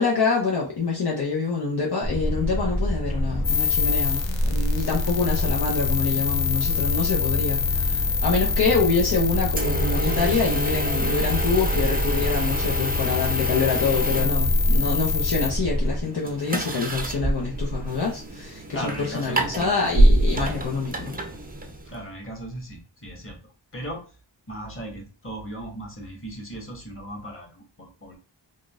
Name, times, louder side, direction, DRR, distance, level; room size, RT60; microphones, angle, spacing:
voice 1, 0.0-21.2, left 4 dB, 60° left, -3 dB, 0.8 m, -26 dB
sound 1, 2.0-16.0, equal, 10° left, 0.9 m, -28 dB
sound 2, 3.4-15.5, left 5 dB, 90° left, 0.6 m, -26 dB
sound 3, 9.5-22.0, right 1 dB, 20° right, 0.6 m, -27 dB
voice 2, 18.7-19.7 21.8-23.4 23.7-24.0 24.5-28.2, right 1 dB, 30° left, 0 dB, 1.3 m, -37 dB
3.6 x 2.6 x 2.3 m, 0.36 s
cardioid pair, 45°, 44 cm